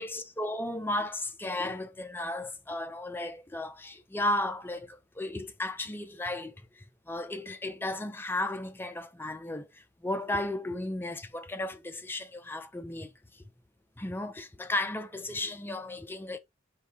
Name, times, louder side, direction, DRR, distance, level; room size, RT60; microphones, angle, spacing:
voice 1, 0.0-13.4 14.0-16.4, left 1 dB, 10° left, 0.4 m, -34 dB
4.6 x 2.6 x 3.6 m
head